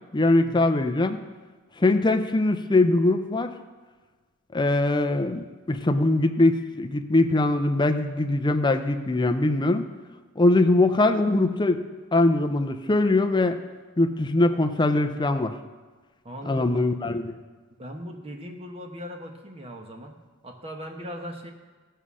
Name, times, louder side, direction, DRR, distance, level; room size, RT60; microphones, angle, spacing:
voice 1, 0.1-1.2 1.8-3.5 4.5-9.9 10.4-11.8 12.1-13.6 14.0-15.5 16.4-17.3, left 2 dB, 20° left, 6 dB, 0.6 m, -22 dB
voice 2, 16.2-16.8 17.8-21.5, equal, 25° right, 3 dB, 1.2 m, -39 dB
15.0 x 5.6 x 6.2 m, 1.3 s
head